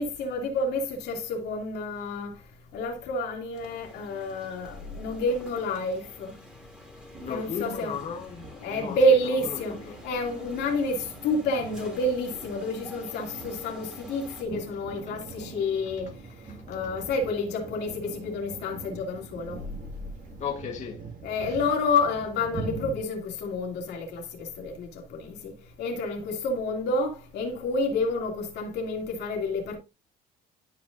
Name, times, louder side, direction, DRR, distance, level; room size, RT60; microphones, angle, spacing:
voice 1, 0.0-2.4 2.7-6.4 7.3-8.0 8.6-16.1 16.7-19.6 21.2-29.8, left 1 dB, 80° left, 2.6 m, -29 dB
sound 1, 3.5-14.4, left 1 dB, 5° right, 2.6 m, -48 dB
sound 2, 7.1-23.0, right 4 dB, 55° right, 1.9 m, -43 dB
voice 2, 7.2-9.0 9.2-10.0 16.7-16.8 20.4-21.0 21.4-21.6, left 7 dB, 45° left, 1.2 m, -36 dB
12.0 x 5.2 x 2.5 m
cardioid pair, 110°, 17 cm